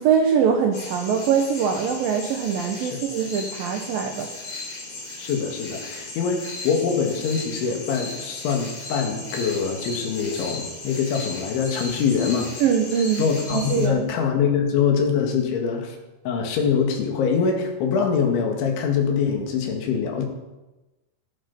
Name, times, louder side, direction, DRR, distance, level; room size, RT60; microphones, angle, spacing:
voice 1, 0.0-4.3 12.6-14.1, right 7 dB, 85° right, 4 dB, 2.0 m, -23 dB
sound 1, 0.7-13.9, left 2 dB, 40° left, 5.1 m, -36 dB
voice 2, 5.2-12.5 13.2-16.0 16.3-20.3, left 6 dB, 70° left, 3 dB, 4.3 m, -24 dB
16.5 x 13.5 x 5.5 m, 1.1 s
omnidirectional pair, 6.0 m